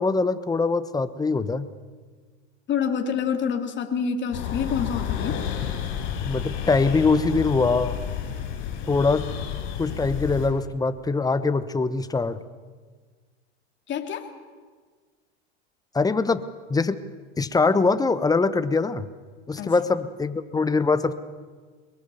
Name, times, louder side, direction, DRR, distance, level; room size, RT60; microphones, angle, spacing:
voice 1, 0.0-1.7 6.2-8.0 8.9-9.3 9.8-12.4 15.9-16.4 16.7-17.0 17.4-19.1 19.5-21.1, left 4 dB, 10° left, 13 dB, 1.0 m, -23 dB
voice 2, 2.7-5.4 13.9-14.3 19.6-19.7, left 7 dB, 35° left, 4 dB, 2.9 m, -27 dB
sound 1, 4.3-10.5, left 9 dB, 60° left, 6.8 m, -31 dB
22.0 x 22.0 x 7.0 m, 1.5 s
hypercardioid pair, 110°, 34 cm